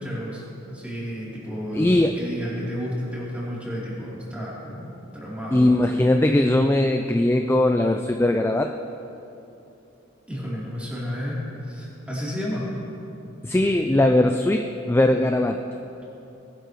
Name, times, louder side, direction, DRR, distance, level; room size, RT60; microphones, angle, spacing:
voice 1, 0.0-6.1 10.3-12.7, equal, 5° right, -8 dB, 3.3 m, -32 dB
voice 2, 1.7-2.2 5.5-8.7 13.4-15.6, left 1 dB, 10° left, 4 dB, 0.3 m, -20 dB
20.0 x 11.5 x 3.1 m, 2.9 s
head